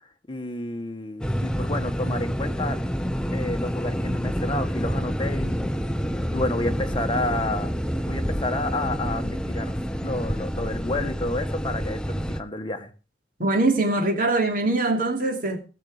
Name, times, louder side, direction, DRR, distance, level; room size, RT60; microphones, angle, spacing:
voice 1, 0.3-2.8 3.3-5.6 6.3-7.7 8.1-9.7 10.0-12.9, left 2 dB, 30° left, 1.3 m, -30 dB
sound 1, 1.2-12.4, equal, 5° left, 0.6 m, -28 dB
voice 2, 13.4-15.7, right 2 dB, 55° right, 2.7 m, -23 dB
18.5 x 6.9 x 4.9 m
head